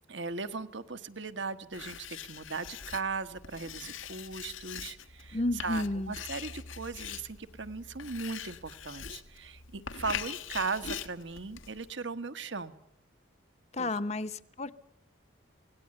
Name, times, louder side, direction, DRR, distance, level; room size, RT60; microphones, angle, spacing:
voice 1, 0.1-12.7 13.8-14.0, right 4 dB, 70° right, 10 dB, 1.4 m, -38 dB
Writing, 1.7-11.9, left 7 dB, 85° left, 1.4 m, -43 dB
voice 2, 5.3-6.1 13.7-14.8, left 2 dB, 35° left, 12 dB, 0.9 m, -32 dB
26.0 x 18.5 x 8.8 m, 0.80 s
head